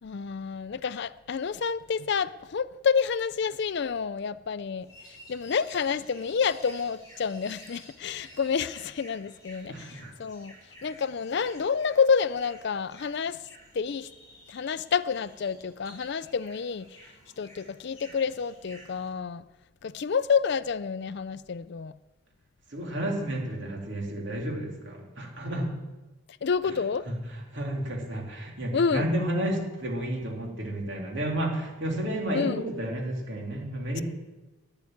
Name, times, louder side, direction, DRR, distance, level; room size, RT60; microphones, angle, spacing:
voice 1, 0.0-10.5 10.8-13.5 13.7-14.1 14.5-17.0 17.4-19.4 19.8-22.0 26.4-27.1 28.7-29.1 32.3-32.6, left 6 dB, 50° left, 0.4 m, -29 dB
sound 1, 4.8-19.1, equal, 15° left, 6.1 m, -52 dB
voice 2, 9.7-10.1 22.7-25.7 27.1-27.2 27.5-34.0, right 1 dB, 55° right, 3.3 m, -31 dB
11.5 x 9.7 x 9.3 m
head